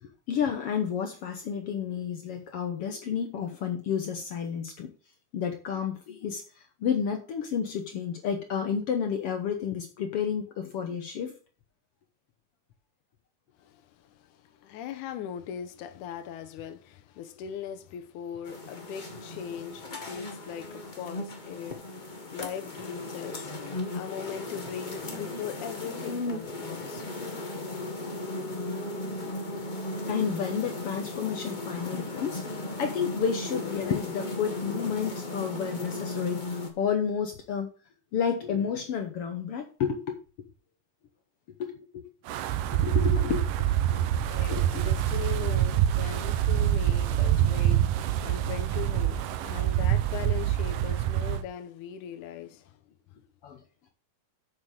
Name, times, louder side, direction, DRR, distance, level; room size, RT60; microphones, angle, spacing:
voice 1, 0.0-4.9 5.3-11.4 30.1-37.7 38.1-40.2 41.6-42.0 42.7-43.4 43.9-44.0 44.5-44.9 53.4-53.6, left 7 dB, 65° left, 1.6 m, -31 dB
voice 2, 13.6-27.1 43.9-52.8, left 9 dB, 80° left, 2.3 m, -40 dB
sound 1, 18.4-36.7, left 2 dB, 35° left, 0.7 m, -36 dB
Wind, 42.3-51.4, right 11 dB, 85° right, 2.4 m, -26 dB
7.6 x 6.9 x 6.4 m
omnidirectional pair, 3.6 m